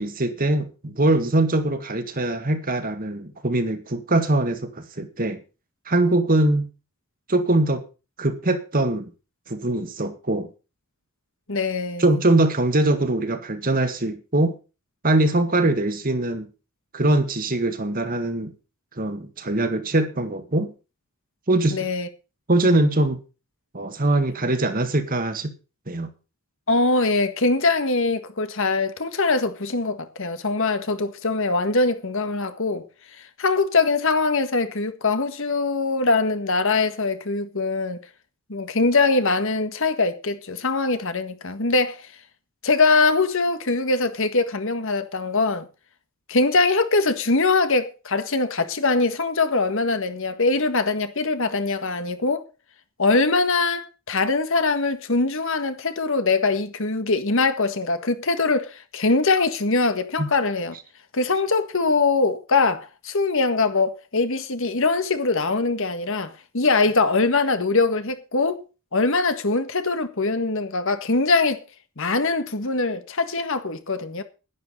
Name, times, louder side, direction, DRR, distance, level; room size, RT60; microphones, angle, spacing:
voice 1, 0.0-5.4 5.9-6.7 7.3-7.8 8.2-9.1 9.5-10.5 12.0-14.6 15.0-16.5 16.9-18.5 19.0-20.7 21.5-21.8 22.5-23.2 23.7-25.5 25.9-26.1 60.2-60.3, right 2 dB, 40° right, 1.8 m, -22 dB
voice 2, 11.5-12.0 21.7-22.1 26.7-32.8 33.4-38.0 38.5-42.0 42.6-45.7 46.3-52.4 53.0-60.8 61.1-68.6 68.9-71.6 72.0-74.2, left 3 dB, 65° left, 1.7 m, -22 dB
11.5 x 11.0 x 5.5 m
head